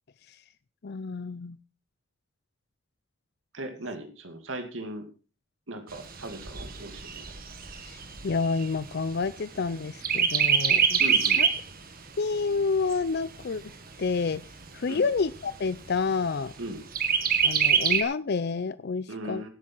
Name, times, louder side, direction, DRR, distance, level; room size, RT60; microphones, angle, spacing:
voice 1, 0.8-1.6 7.8-11.0 11.4-11.5 12.2-13.6 14.0-14.4 14.7-16.5 17.4-19.5, left 4 dB, 55° left, 15 dB, 0.5 m, -29 dB
voice 2, 3.5-5.1 5.7-7.2 11.0-11.5 14.9-15.1 16.6-16.8 19.1-19.5, right 1 dB, 70° right, 7 dB, 2.5 m, -38 dB
Chirp tweet, 5.9-9.6 10.0-11.7 12.1-12.2 12.6-13.6 14.2-14.3 14.6-14.7 15.2-15.7 16.9-18.0, right 7 dB, 45° right, 1.8 m, -25 dB
17.0 x 8.6 x 4.6 m, 0.36 s
head